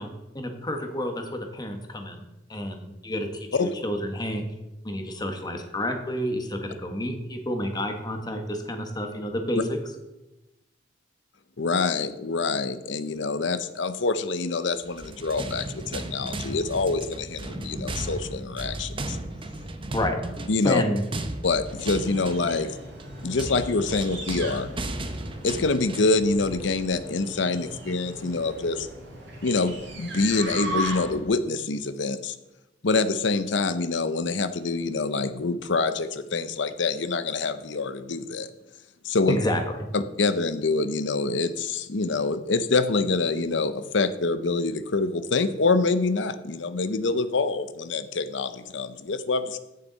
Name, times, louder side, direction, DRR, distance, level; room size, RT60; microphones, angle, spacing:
voice 1, 0.0-2.2 2.5-4.4 4.8-9.8 19.9-20.2 20.6-21.0 39.3-39.8, left 1 dB, 20° left, 4 dB, 1.4 m, -29 dB
voice 2, 11.6-19.2 20.5-20.8 21.4-22.7 23.2-24.7 25.4-28.9 29.4-32.4 32.8-38.5 39.0-39.4 39.9-49.6, left 3 dB, 70° left, 11 dB, 0.7 m, -26 dB
sound 1, 14.8-26.3, right 2 dB, 30° right, 0.9 m, -35 dB
sound 2, 21.5-31.3, right 1 dB, 70° right, 4.3 m, -38 dB
14.5 x 6.9 x 4.1 m, 0.97 s
head